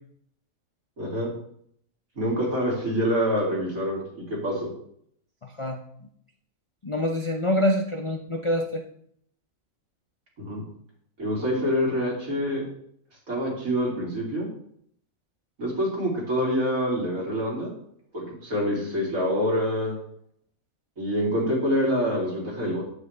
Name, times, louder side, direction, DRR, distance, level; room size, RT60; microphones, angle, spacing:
voice 1, 1.0-1.3 2.2-4.7 10.4-10.6 11.2-12.7 13.3-14.5 15.6-17.7 18.1-20.0 21.0-22.8, equal, 70° right, -3 dB, 3.2 m, -26 dB
voice 2, 5.4-5.8 6.8-8.8, left 1 dB, 50° left, 4 dB, 0.3 m, -26 dB
9.7 x 8.3 x 3.3 m, 0.67 s
omnidirectional pair, 1.5 m